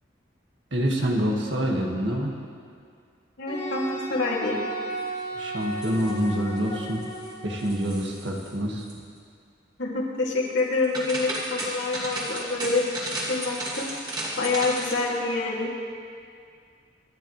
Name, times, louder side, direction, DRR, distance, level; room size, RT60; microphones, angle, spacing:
voice 1, 0.7-2.3 5.4-7.0 7.4-8.8, equal, 65° right, -1 dB, 1.9 m, -26 dB
voice 2, 3.4-4.6 9.8-13.9 14.4-15.7, left 3 dB, 75° left, -3 dB, 2.6 m, -27 dB
Wind instrument woodwind instrument, 3.5-7.8, right 1 dB, 35° left, 2.4 m, -34 dB
sound 1, 5.6-6.6 6.9-7.3 7.6-8.5 8.8-8.9 10.6-15.1, right 1 dB, 20° right, 2.7 m, -34 dB
26.0 x 11.0 x 3.3 m, 2.3 s
head